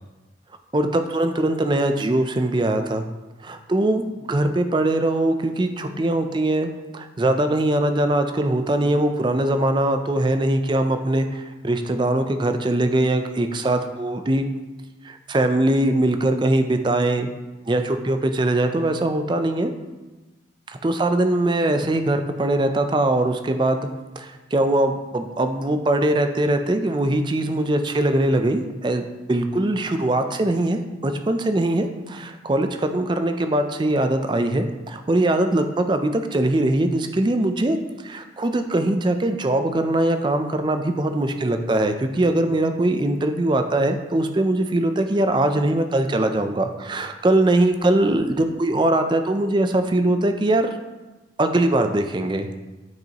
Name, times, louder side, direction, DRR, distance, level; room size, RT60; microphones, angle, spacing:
voice 1, 0.7-3.0 3.4-14.5 15.0-17.3 17.7-19.7 20.7-23.8 24.2-29.0 29.3-37.8 38.0-50.7 51.4-52.5, right 1 dB, 25° right, 7 dB, 0.4 m, -21 dB
9.1 x 5.2 x 2.9 m, 1.1 s
head